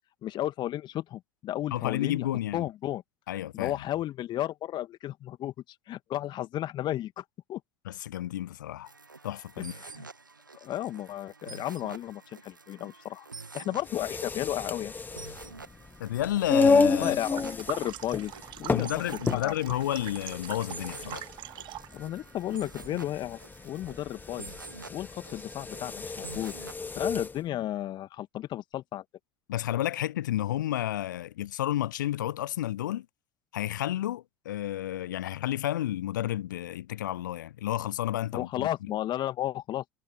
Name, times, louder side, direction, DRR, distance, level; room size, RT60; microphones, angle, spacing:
voice 1, 0.2-2.3 2.5-3.0 3.5-5.5 5.9-7.6 9.8-9.9 10.6-13.3 13.5-14.9 17.0-18.3 18.6-18.9 19.3-19.5 21.9-23.4 23.6-24.5 24.9-26.5 27.0-29.0 38.3-39.9, left 13 dB, 45° left, 2.2 m, -33 dB
voice 2, 1.7-2.7 3.3-3.8 7.9-8.9 9.2-9.7 16.0-17.2 18.7-21.2 29.5-33.1 33.5-38.7, left 13 dB, 75° left, 0.5 m, -31 dB
sound 1, 8.8-26.7, right 3 dB, 90° right, 1.5 m, -48 dB
sound 2, 13.8-27.4, left 4 dB, 20° left, 1.5 m, -31 dB
sound 3, 17.2-22.0, right 16 dB, 50° right, 1.3 m, -43 dB
figure-of-eight pair, 65°, 10 cm